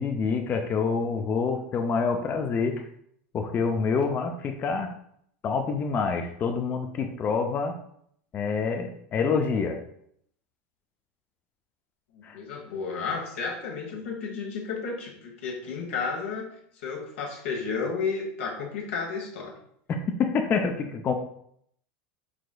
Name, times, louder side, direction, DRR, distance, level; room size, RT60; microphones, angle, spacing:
voice 1, 0.0-2.8 3.3-4.9 5.4-7.8 8.3-9.8 12.2-12.4 20.2-21.1, left 5 dB, 30° left, 4 dB, 0.4 m, -27 dB
voice 2, 12.1-16.5 16.8-19.6, left 5 dB, 90° left, 0 dB, 1.1 m, -32 dB
4.9 x 3.7 x 2.2 m, 0.69 s
supercardioid pair, 120°, 7 cm